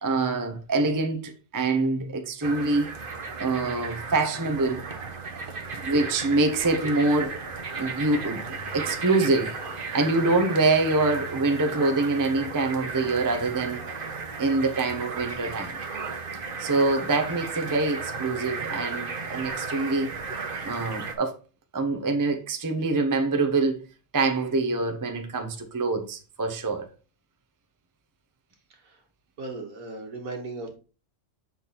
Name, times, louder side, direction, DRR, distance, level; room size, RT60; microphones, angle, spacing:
voice 1, 0.0-2.9 3.4-4.8 5.8-7.4 7.8-8.4 8.7-9.6 9.9-13.8 14.4-15.8 16.6-20.1 20.6-21.3 21.7-23.9 24.1-26.9, right 3 dB, 20° right, 0.6 m, -25 dB
sound 1, 2.4-21.1, right 4 dB, 40° right, 1.0 m, -35 dB
voice 2, 28.7-29.0 29.4-30.8, right 3 dB, 65° right, 1.8 m, -37 dB
7.1 x 4.0 x 4.2 m
omnidirectional pair, 1.6 m